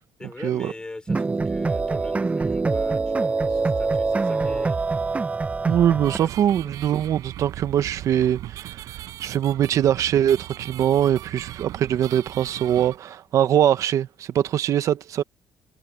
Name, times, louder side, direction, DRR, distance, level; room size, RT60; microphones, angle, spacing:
voice 1, 0.2-4.8 5.6-5.8 6.2-6.7, left 2 dB, 15° left, 5.4 m, -41 dB
sound 1, 1.1-6.2, right 3 dB, 25° right, 1.0 m, -24 dB
voice 2, 5.7-15.2, right 10 dB, 65° right, 1.3 m, -22 dB
sound 2, 6.0-13.0, right 14 dB, 80° right, 5.1 m, -38 dB
cardioid pair, 100°, 6 cm